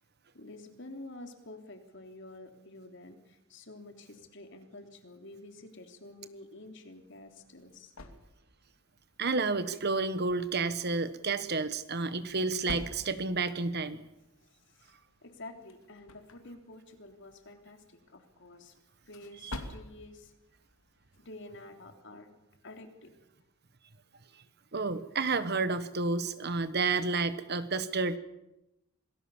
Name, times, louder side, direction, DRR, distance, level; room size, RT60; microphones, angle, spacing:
voice 1, 0.3-7.9 14.4-14.5 14.8-14.9 15.2-18.7 19.1-20.3 21.2-22.3 22.6-23.1, left 2 dB, 55° left, 6 dB, 3.2 m, -49 dB
sound 1, 7.0-21.6, left 1 dB, 75° left, 2.6 m, -50 dB
voice 2, 9.2-14.0 19.4-19.6 24.7-28.2, right 3 dB, 50° right, 13 dB, 1.3 m, -30 dB
27.0 x 19.0 x 7.2 m, 0.89 s
head